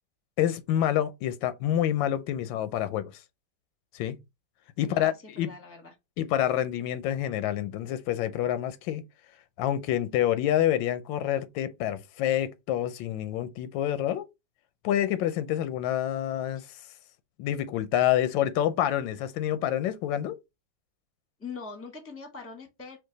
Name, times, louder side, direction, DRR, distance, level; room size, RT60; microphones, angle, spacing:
voice 1, 0.4-3.1 3.9-4.2 4.8-5.5 6.2-9.0 9.6-14.3 14.8-16.6 17.4-20.4, left 11 dB, 90° left, 1.3 m, -27 dB
voice 2, 4.8-5.9 16.5-16.7 21.4-23.0, left 4 dB, 10° left, 0.8 m, -43 dB
4.6 x 2.5 x 3.9 m
omnidirectional pair, 2.0 m